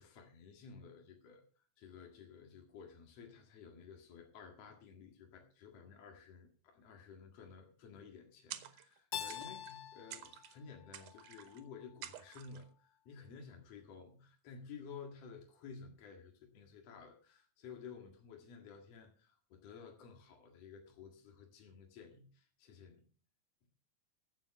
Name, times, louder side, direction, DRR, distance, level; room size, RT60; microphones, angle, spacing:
voice 1, 0.0-1.4 1.8-23.1, left 6 dB, 55° left, 2 dB, 2.8 m, -54 dB
sound 1, 8.5-9.0 9.3-9.8 10.1-10.6 10.9-11.6 12.0-12.6, right 12 dB, 75° right, 2.4 m, -50 dB
Keyboard (musical), 9.1-11.9, left 9 dB, 70° left, 1.6 m, -46 dB
15.0 x 7.3 x 5.9 m, 0.41 s
omnidirectional pair, 3.8 m